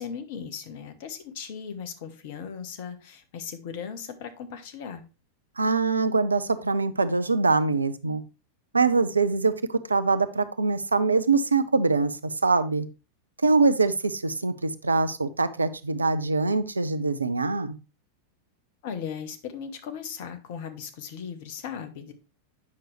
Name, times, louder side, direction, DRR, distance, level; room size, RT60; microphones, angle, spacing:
voice 1, 0.0-5.0 18.8-22.1, left 7 dB, 50° left, 8 dB, 1.2 m, -37 dB
voice 2, 5.6-8.2 8.7-12.9 13.4-17.8, right 4 dB, 80° right, 13 dB, 0.5 m, -24 dB
8.4 x 6.0 x 3.3 m, 0.31 s
figure-of-eight pair, 90°, 0 cm